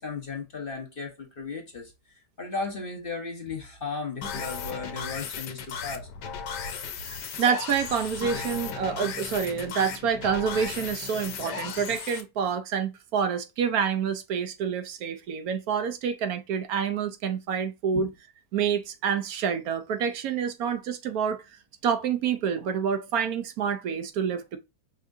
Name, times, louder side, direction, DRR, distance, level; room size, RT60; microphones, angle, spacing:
voice 1, 0.0-1.9 2.4-6.1 17.9-18.1, left 4 dB, 40° left, 0.9 m, -35 dB
sound 1, 4.2-12.2, left 6 dB, 80° left, 1.4 m, -36 dB
voice 2, 7.0-18.1 18.5-21.4 21.8-24.6, right 7 dB, 70° right, 1.0 m, -28 dB
5.4 x 3.5 x 2.5 m
omnidirectional pair, 1.8 m